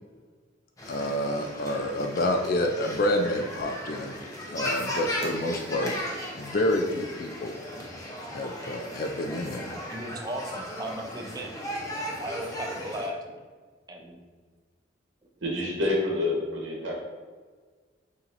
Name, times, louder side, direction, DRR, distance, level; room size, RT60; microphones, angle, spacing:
sound 1, 0.8-13.1, equal, 20° left, 0.7 m, -36 dB
voice 1, 0.9-4.2 4.5-5.9 6.3-7.5 8.3-9.7, left 1 dB, 50° left, 4 dB, 0.3 m, -28 dB
voice 2, 9.9-11.5 12.2-13.2 13.9-14.2, right 1 dB, 20° right, 3 dB, 0.5 m, -36 dB
voice 3, 15.4-16.9, left 2 dB, 80° right, -2 dB, 1.2 m, -27 dB
6.8 x 2.8 x 2.5 m, 1.5 s
head